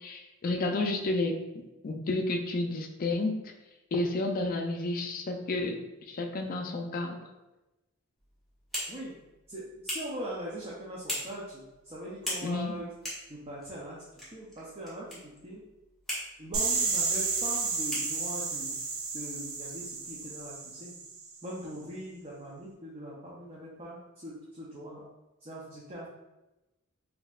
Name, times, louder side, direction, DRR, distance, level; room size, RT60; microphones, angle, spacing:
voice 1, 0.0-3.3 3.9-5.8 6.1-7.2 12.4-12.8, left 2 dB, 40° left, 4 dB, 0.4 m, -31 dB
sound 1, 8.2-20.6, left 1 dB, ahead, 1.1 m, -43 dB
voice 2, 9.5-12.9 13.3-14.0 14.3-15.6 16.4-18.8 19.1-21.0 21.4-25.0 25.4-26.1, right 1 dB, 30° right, -5 dB, 0.5 m, -41 dB
sound 2, 16.5-21.3, right 4 dB, 90° right, 0.6 m, -32 dB
4.2 x 2.7 x 2.4 m, 1.0 s
head